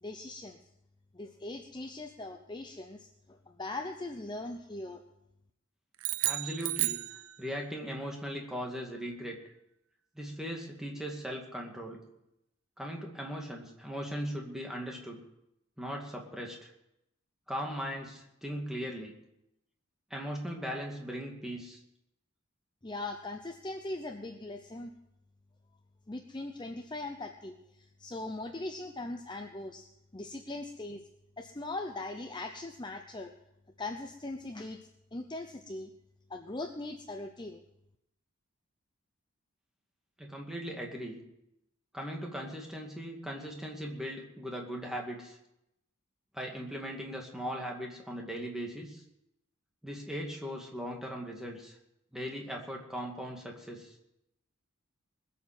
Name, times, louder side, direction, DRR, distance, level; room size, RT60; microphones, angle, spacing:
voice 1, 0.0-0.6 1.1-5.0 22.8-24.9 26.1-31.0 31.4-33.3 33.8-35.9 36.3-37.6, left 2 dB, 20° left, 5 dB, 0.7 m, -40 dB
sound 1, 6.0-7.8, right 16 dB, 80° right, 0.6 m, -33 dB
voice 2, 6.2-7.0 7.4-9.4 10.2-12.0 12.8-15.2 15.8-16.7 17.5-19.1 20.1-21.8 40.2-41.2 41.9-45.4 46.3-49.0 49.8-51.8 52.1-53.9, equal, ahead, 0 dB, 2.2 m, -39 dB
21.0 x 7.2 x 7.7 m, 0.84 s
head